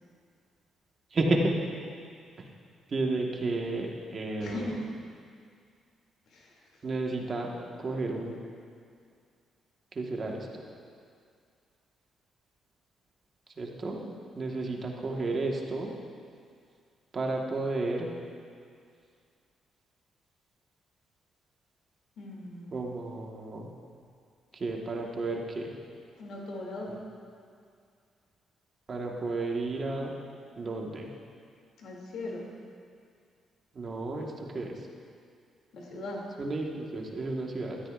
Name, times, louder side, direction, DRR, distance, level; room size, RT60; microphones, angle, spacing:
voice 1, 1.1-1.5 2.9-4.6 6.8-7.5 7.8-8.3 9.9-10.6 13.6-15.9 17.1-18.1 22.7-23.7 24.5-25.7 28.9-30.1 30.6-31.1 33.7-34.7 36.4-37.8, right 2 dB, 40° right, 0 dB, 1.4 m, -32 dB
voice 2, 4.4-4.7 6.3-6.5 22.2-22.9 26.2-26.9 31.8-32.4 35.7-36.2, left 2 dB, 70° left, -2 dB, 2.6 m, -39 dB
15.5 x 13.0 x 2.5 m, 2.2 s
cardioid pair, 90°, 0 cm